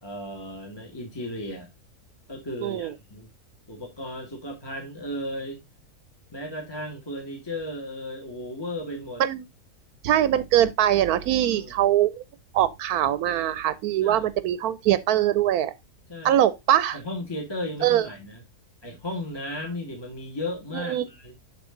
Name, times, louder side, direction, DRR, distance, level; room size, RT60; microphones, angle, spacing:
voice 1, 0.0-1.7 2.3-3.3 3.7-5.6 6.3-9.2 11.4-11.8 14.0-14.2 16.1-16.4 16.9-18.4 18.8-21.4, left 1 dB, 15° left, 1.7 m, -35 dB
voice 2, 10.0-12.2 12.5-15.7 16.2-17.0 17.8-18.1 20.7-21.0, right 11 dB, 80° right, 1.1 m, -22 dB
11.5 x 4.1 x 3.7 m
omnidirectional pair, 1.6 m